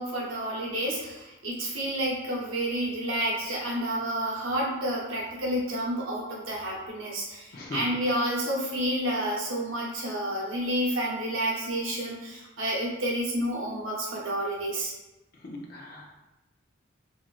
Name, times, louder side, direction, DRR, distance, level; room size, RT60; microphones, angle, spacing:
voice 1, 0.0-14.9, right 1 dB, 90° right, -3 dB, 0.8 m, -30 dB
voice 2, 7.5-7.9 15.4-16.2, left 2 dB, 45° left, -1 dB, 0.5 m, -39 dB
3.0 x 2.5 x 2.3 m, 1.0 s
head